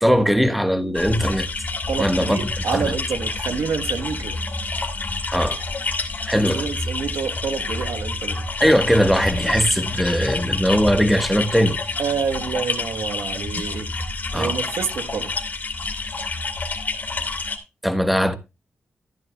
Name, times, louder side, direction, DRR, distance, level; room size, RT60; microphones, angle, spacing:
voice 1, 0.0-1.5 2.0-2.4 2.7-2.9 5.3-5.6 6.3-6.7 8.6-11.8 14.3-14.6 17.8-18.3, equal, ahead, 1.3 m, -19 dB
sound 1, 0.9-17.6, left 3 dB, 45° left, 2.6 m, -28 dB
voice 2, 1.9-4.4 6.4-8.4 12.0-13.9 14.3-15.4, right 6 dB, 90° right, 1.2 m, -28 dB
14.0 x 10.0 x 2.3 m
cardioid pair, 75°, 4 cm